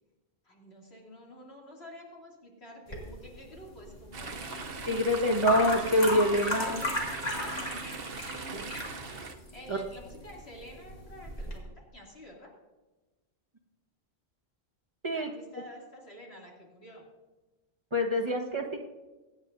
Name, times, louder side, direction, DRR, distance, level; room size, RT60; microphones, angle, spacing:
voice 1, 0.4-4.7 6.5-7.1 9.5-12.5 15.1-17.0, left 1 dB, 75° left, -3 dB, 3.0 m, -49 dB
sound 1, 2.9-11.6, left 1 dB, 40° left, 2.3 m, -36 dB
Chatter / Stream, 4.1-9.3, right 4 dB, 60° right, 1.1 m, -40 dB
voice 2, 4.9-6.8 8.5-8.7 9.7-9.8 15.0-15.3 17.9-18.8, left 1 dB, 25° right, 0 dB, 1.4 m, -26 dB
24.0 x 9.1 x 2.7 m, 1.1 s
omnidirectional pair, 1.1 m